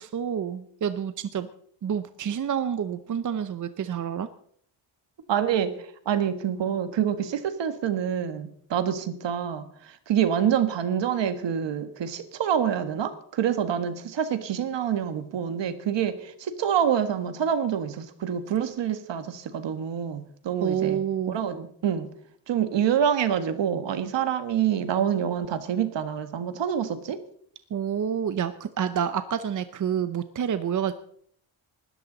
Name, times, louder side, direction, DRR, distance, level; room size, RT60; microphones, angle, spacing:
voice 1, 0.0-1.5 1.8-4.3 20.6-21.4 27.7-30.9, right 8 dB, 40° right, 11 dB, 0.7 m, -28 dB
voice 2, 5.3-5.7 6.0-21.0 21.3-22.1 22.5-27.2, right 9 dB, 65° right, 10 dB, 1.7 m, -26 dB
20.0 x 13.0 x 4.0 m, 0.63 s
cardioid pair, 140°, 47 cm